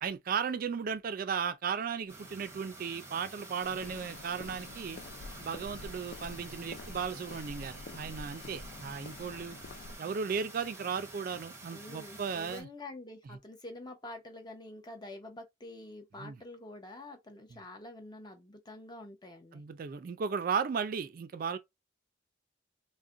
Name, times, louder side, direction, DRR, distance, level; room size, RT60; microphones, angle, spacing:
voice 1, 0.0-5.0 5.4-9.6 10.0-12.7 16.2-16.4 19.5-21.6, right 6 dB, 50° right, 0.3 m, -35 dB
sound 1, 2.1-12.6, right 2 dB, 15° right, 0.8 m, -49 dB
Walk footsteps, 3.6-10.0, left 3 dB, 55° left, 0.3 m, -47 dB
voice 2, 11.7-19.6, left 2 dB, 25° left, 0.7 m, -47 dB
2.4 x 2.1 x 3.7 m
head